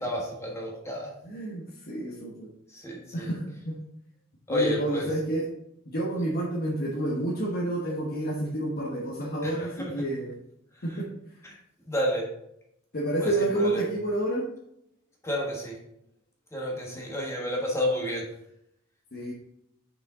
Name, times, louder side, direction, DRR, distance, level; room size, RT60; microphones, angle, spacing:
voice 1, 0.0-1.1 2.7-3.3 4.5-5.1 6.2-6.3 9.4-10.0 10.7-11.0 11.4-11.6 11.9-12.3 13.2-13.8 15.2-15.8 16.5-18.3, equal, 15° left, -1 dB, 1.3 m, -31 dB
voice 2, 1.2-2.5 3.1-3.8 4.5-5.4 5.9-10.3 10.8-11.1 12.9-14.4 19.1-19.3, right 1 dB, 50° left, -4 dB, 1.2 m, -29 dB
6.1 x 5.4 x 3.7 m, 0.76 s
head